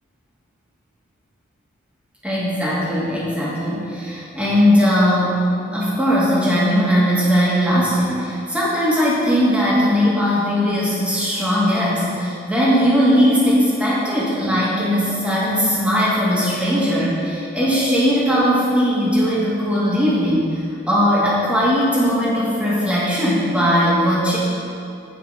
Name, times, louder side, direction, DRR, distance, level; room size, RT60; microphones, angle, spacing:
voice 1, 2.2-20.5 20.9-24.4, equal, 5° right, -7 dB, 1.7 m, -19 dB
8.5 x 5.0 x 5.0 m, 2.6 s
head